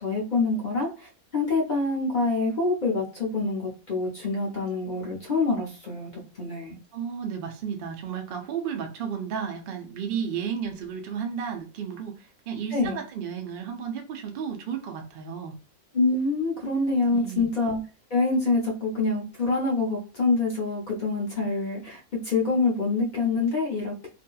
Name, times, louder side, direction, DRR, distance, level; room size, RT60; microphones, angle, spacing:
voice 1, 0.0-6.8 12.7-13.0 15.9-17.8 18.1-24.1, left 3 dB, 50° left, 0.6 m, -26 dB
voice 2, 6.9-15.6 17.1-17.5, right 7 dB, 75° right, 0.5 m, -33 dB
2.7 x 2.4 x 2.2 m
omnidirectional pair, 1.5 m